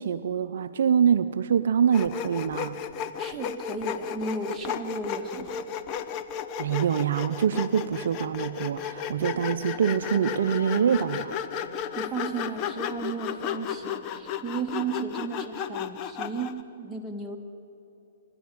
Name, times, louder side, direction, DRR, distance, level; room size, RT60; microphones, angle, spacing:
voice 1, 0.0-2.8 6.6-11.4, right 8 dB, 65° right, 10 dB, 0.7 m, -25 dB
Sawing, 1.9-16.6, left 8 dB, 35° left, 0.9 m, -34 dB
voice 2, 3.2-5.6 12.0-17.4, right 4 dB, 5° right, -1 dB, 2.1 m, -34 dB
Wind instrument woodwind instrument, 10.0-14.9, left 2 dB, 60° left, 5.9 m, -47 dB
28.0 x 11.5 x 9.5 m, 3.0 s
hypercardioid pair, 125°, 0 cm